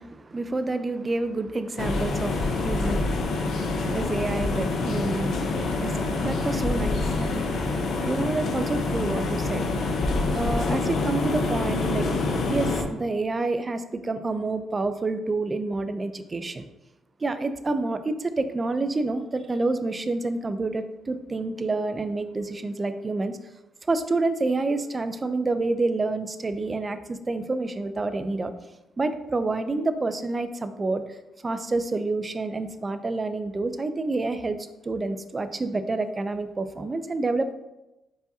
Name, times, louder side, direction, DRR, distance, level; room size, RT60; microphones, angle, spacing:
voice 1, 0.0-9.9 10.3-12.1 12.5-16.6 17.2-23.4 23.9-28.5 29.0-31.2 31.4-34.6 34.9-37.5, right 3 dB, 30° right, 10 dB, 0.4 m, -28 dB
sound 1, 1.8-12.8, left 3 dB, 60° left, 0.6 m, -26 dB
4.7 x 3.9 x 2.7 m, 0.98 s
cardioid pair, 90°, 0 cm